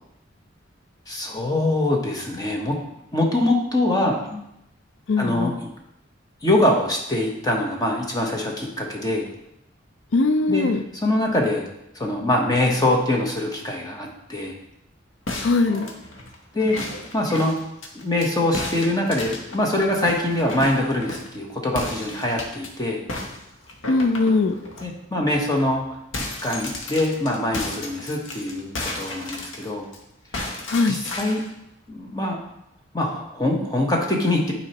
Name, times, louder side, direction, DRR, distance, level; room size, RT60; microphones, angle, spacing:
voice 1, 1.1-2.8 3.1-4.4 5.2-5.5 6.4-9.3 10.5-10.7 11.0-11.7 11.9-14.6 16.5-16.8 17.1-17.6 17.9-23.0 24.8-25.8 26.4-29.9 30.3-31.4 31.9-32.4 32.9-34.5, left 1 dB, 20° left, 0 dB, 0.9 m, -23 dB
voice 2, 5.1-5.6 10.1-10.8 15.4-15.9 23.9-24.5 30.7-31.0, left 3 dB, 70° left, 9 dB, 0.4 m, -20 dB
sound 1, 15.3-18.3 18.5-21.4 21.7-22.7 23.1-24.8 25.3-25.4 25.7-30.0 30.3-31.5, left 2 dB, 90° left, 1.0 m, -34 dB
9.6 x 4.3 x 2.9 m, 0.82 s
head